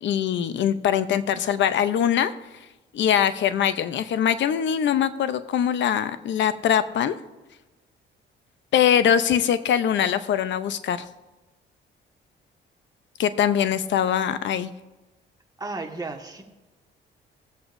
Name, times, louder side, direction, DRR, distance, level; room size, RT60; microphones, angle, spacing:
voice 1, 0.0-2.3 2.9-7.2 8.7-11.0 13.2-14.7, left 9 dB, 70° left, 12 dB, 0.8 m, -22 dB
voice 2, 15.6-16.4, right 3 dB, 20° right, 1 dB, 1.7 m, -33 dB
20.0 x 7.9 x 2.7 m, 1.1 s
cardioid pair, 90°, 20 cm